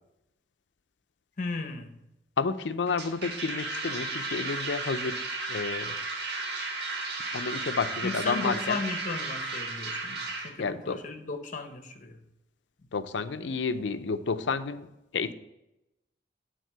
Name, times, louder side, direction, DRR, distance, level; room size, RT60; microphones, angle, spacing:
voice 1, 1.4-2.0 8.0-12.2, left 3 dB, 45° left, 0.9 m, -35 dB
voice 2, 2.4-5.9 7.3-8.8 10.6-11.0 12.9-14.9 15.1-15.3, left 4 dB, 80° left, 0.5 m, -31 dB
sound 1, 2.9-10.5, right 3 dB, 65° right, 1.4 m, -34 dB
9.2 x 4.2 x 6.7 m
head